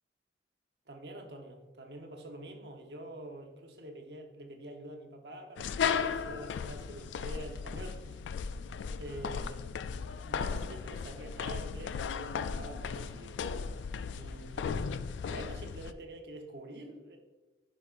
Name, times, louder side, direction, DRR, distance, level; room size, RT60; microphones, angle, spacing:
voice 1, 0.9-8.2 9.0-9.6 10.2-13.5 14.1-17.2, right 1 dB, 60° right, 3 dB, 0.9 m, -46 dB
sound 1, 5.6-15.9, left 6 dB, 80° left, 0.3 m, -36 dB
11.0 x 5.1 x 2.5 m, 1.2 s
head